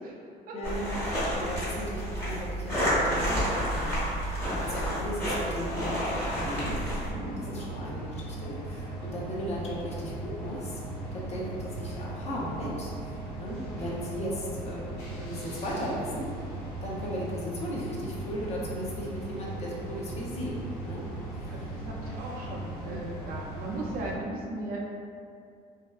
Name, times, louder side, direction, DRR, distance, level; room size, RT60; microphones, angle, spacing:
voice 1, 0.5-6.2 6.4-6.9 7.1-10.8 11.1-16.3 16.8-20.6 20.8-21.0 21.3-21.6 22.8-23.1, equal, 40° left, -5 dB, 0.6 m, -36 dB
sound 1, 0.6-7.1, equal, 15° left, 1.0 m, -30 dB
sound 2, 6.3-24.1, right 2 dB, 90° left, 0.7 m, -38 dB
voice 2, 7.1-7.9 11.0-11.3 21.2-24.8, right 2 dB, 60° right, -3 dB, 0.5 m, -38 dB
2.5 x 2.2 x 2.3 m, 2.3 s
cardioid pair, 110°, 17 cm